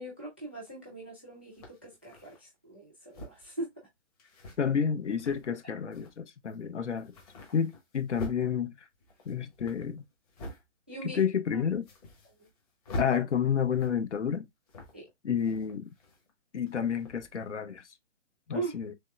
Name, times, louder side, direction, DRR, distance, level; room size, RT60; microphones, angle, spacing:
voice 1, 0.0-3.7 10.9-11.3 11.5-11.6 12.2-12.5 14.9-15.1 18.5-18.8, right 3 dB, 10° right, 0.4 m, -40 dB
sound 1, 0.7-0.8 1.5-2.4 3.1-3.5 4.2-4.6 5.1-5.5 5.9-6.1 6.5-6.6 6.9-8.4 8.9-10.6 11.1-11.2 11.6-12.6 12.8-13.1 13.7-14.1 14.7-15.1 15.4-16.3 16.7-17.3, left 1 dB, 30° left, 1.2 m, -44 dB
voice 2, 4.6-7.1 7.5-8.7 9.3-10.0 11.1-11.9 13.0-14.5 15.2-15.9 16.5-17.8 18.5-18.9, left 7 dB, 70° left, 0.7 m, -30 dB
3.5 x 3.2 x 2.2 m
figure-of-eight pair, 130°, 36 cm